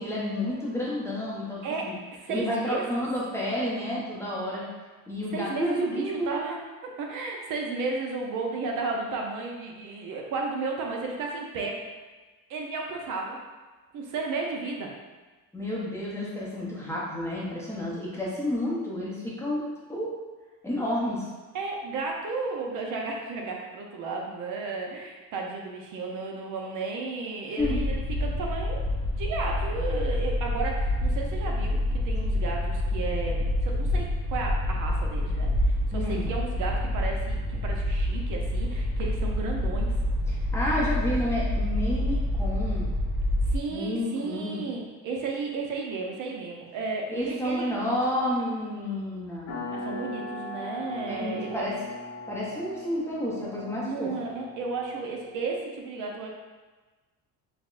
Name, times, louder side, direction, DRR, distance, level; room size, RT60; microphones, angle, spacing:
voice 1, 0.0-1.9 2.3-4.6 5.1-6.3 15.5-20.1 20.6-21.3 27.6-27.8 35.9-36.3 40.3-42.9 43.7-44.6 47.1-49.5 51.1-51.7 52.3-54.2, left 1 dB, 5° left, -6 dB, 0.6 m, -30 dB
voice 2, 1.6-3.1 5.3-6.6 7.0-11.9 12.5-13.4 13.9-14.9 21.5-28.8 29.2-39.9 43.5-47.9 49.7-51.6 53.8-56.3, right 3 dB, 60° right, 0 dB, 0.6 m, -33 dB
sound 1, 27.6-43.6, left 1 dB, 25° right, 0.8 m, -27 dB
sound 2, 49.5-55.7, left 1 dB, 85° left, 1.1 m, -39 dB
5.6 x 2.1 x 2.4 m, 1.3 s
cardioid pair, 140°, 36 cm